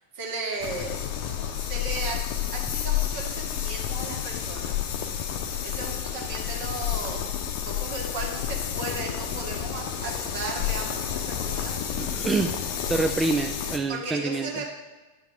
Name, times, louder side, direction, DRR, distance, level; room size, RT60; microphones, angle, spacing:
voice 1, 0.2-1.0 1.6-2.2 2.5-4.7 5.6-11.7 13.9-14.7, right 3 dB, 50° right, 0 dB, 1.9 m, -35 dB
sound 1, 0.6-13.8, left 9 dB, 50° left, 0.8 m, -30 dB
voice 2, 12.0-14.5, right 3 dB, 15° right, 4 dB, 0.4 m, -27 dB
10.5 x 4.7 x 4.9 m, 1.2 s
figure-of-eight pair, 90°, 0 cm